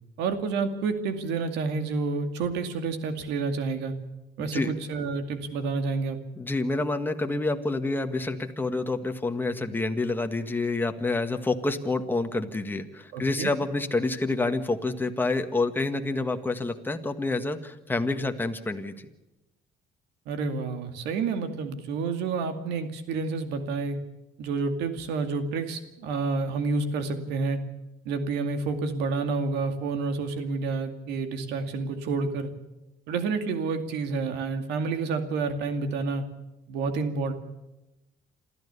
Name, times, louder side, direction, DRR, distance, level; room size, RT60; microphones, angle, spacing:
voice 1, 0.2-3.9 4.4-6.2 13.1-13.5 20.3-24.0 24.4-27.6 28.0-32.5 33.1-36.3 36.7-37.3, right 4 dB, 85° right, 8 dB, 2.3 m, -29 dB
voice 2, 4.4-4.7 6.4-19.1, left 2 dB, 10° left, 6 dB, 1.8 m, -28 dB
28.0 x 13.5 x 6.9 m, 1.0 s
cardioid pair, 110°, 17 cm